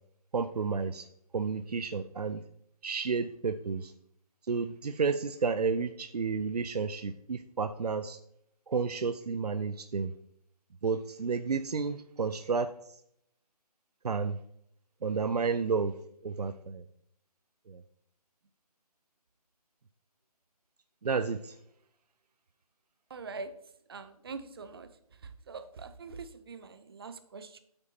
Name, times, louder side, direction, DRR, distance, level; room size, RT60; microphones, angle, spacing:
voice 1, 0.3-1.1 1.3-2.4 2.8-3.9 4.5-8.2 8.7-10.1 10.8-13.0 14.0-14.4 15.0-15.9 16.2-16.8 17.7-17.8 21.0-21.6, right 5 dB, 80° right, 10 dB, 0.5 m, -31 dB
voice 2, 23.1-23.5 23.9-24.9 25.5-27.6, right 4 dB, 40° right, 11 dB, 0.7 m, -43 dB
8.9 x 8.0 x 2.8 m, 0.72 s
figure-of-eight pair, 150°, 20 cm